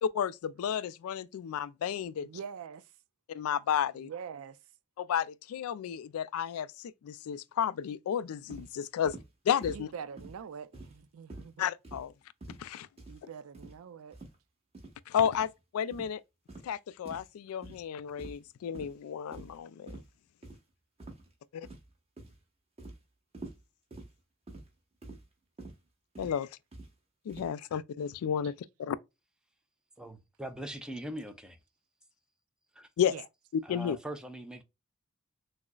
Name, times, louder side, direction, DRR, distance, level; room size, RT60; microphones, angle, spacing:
voice 1, 0.0-2.3 3.3-4.1 5.0-9.2 9.5-9.9 11.6-12.1 12.6-12.9 15.1-16.2 16.6-20.0 21.5-21.7 26.2-26.5 27.3-29.0 33.0-33.1 33.5-34.0, left 8 dB, 85° left, 0.3 m, -32 dB
voice 2, 2.2-2.9 4.0-4.6 9.7-11.6 13.1-14.2 33.1-33.2, right 7 dB, 80° right, 0.4 m, -44 dB
sound 1, 8.5-8.7 9.0-9.3 9.6-9.8 10.2-10.4 10.7-11.0 11.3-11.5 11.8-12.1 12.4-12.7 13.0-13.2 13.5-13.8 14.1-14.3 14.7-14.9 15.3-15.5 15.9-16.1 16.5-16.7 17.0-17.3 17.6-17.8 18.2-18.5 18.7-18.9 19.3-19.6 19.9-20.1 20.4-20.6 21.0-21.3 21.6-21.9 22.2-22.4 22.8-23.0 23.3-23.6 23.9-24.1 24.5-24.7 25.0-25.2 25.6-25.8 26.1-26.4 26.7-26.9 27.3-27.5, right 2 dB, 30° right, 1.1 m, -46 dB
voice 3, 30.0-31.6 32.7-32.9 33.6-34.6, right 1 dB, 5° right, 0.5 m, -41 dB
6.1 x 2.0 x 2.2 m
head